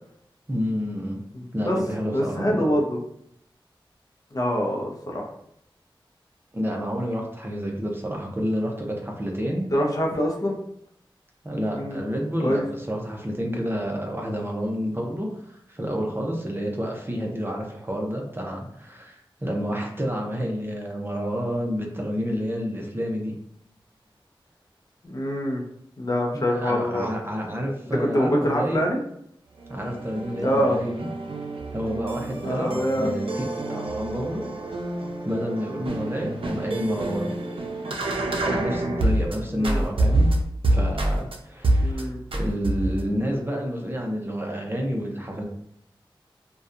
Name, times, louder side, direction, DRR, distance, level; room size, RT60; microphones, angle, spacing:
voice 1, 0.5-1.2 1.5-2.7 6.5-9.7 11.4-23.3 26.3-28.8 29.7-31.1 31.7-33.4 33.7-34.5 35.2-37.3 38.4-40.3 40.7-45.4, equal, 25° right, 0 dB, 0.6 m, -29 dB
voice 2, 1.3-1.8 2.1-3.0 4.3-5.3 9.7-10.6 11.7-12.0 12.4-12.6 25.0-25.6 26.0-27.1 27.9-29.0 30.4-30.8 32.4-33.1 39.6-39.9 41.8-42.2, equal, 40° left, 0 dB, 0.5 m, -25 dB
sound 1, 29.6-39.4 39.6-41.4 41.6-42.0 42.3-43.1, right 1 dB, 85° right, 0.4 m, -27 dB
2.6 x 2.2 x 2.4 m, 0.73 s
wide cardioid pair, 70°, 9 cm